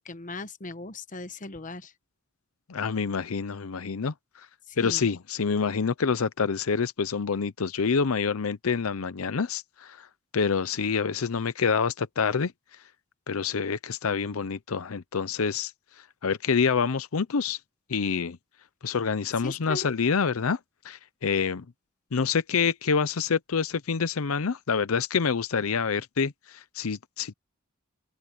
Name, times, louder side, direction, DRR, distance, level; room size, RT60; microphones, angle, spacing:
voice 1, 0.0-1.9 4.7-5.1 19.4-19.9, left 2 dB, 40° left, 1.1 m, -38 dB
voice 2, 2.7-4.5 4.8-10.1 10.3-12.5 13.3-15.7 16.2-17.6 17.9-18.4 18.8-20.6 20.8-21.6 22.1-27.3, left 5 dB, 85° left, 0.7 m, -27 dB
open air
head